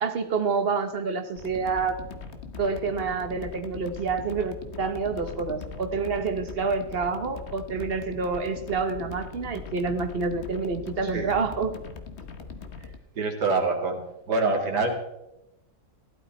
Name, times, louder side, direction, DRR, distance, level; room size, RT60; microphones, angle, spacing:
voice 1, 0.0-2.0 2.6-11.7, right 4 dB, 40° right, 8 dB, 1.1 m, -28 dB
sound 1, 1.4-13.0, left 4 dB, 45° left, 1.3 m, -41 dB
voice 2, 11.0-11.4 12.8-14.0 14.3-14.9, right 3 dB, 80° right, 1 dB, 2.5 m, -26 dB
16.0 x 12.0 x 4.4 m, 0.92 s
omnidirectional pair, 1.8 m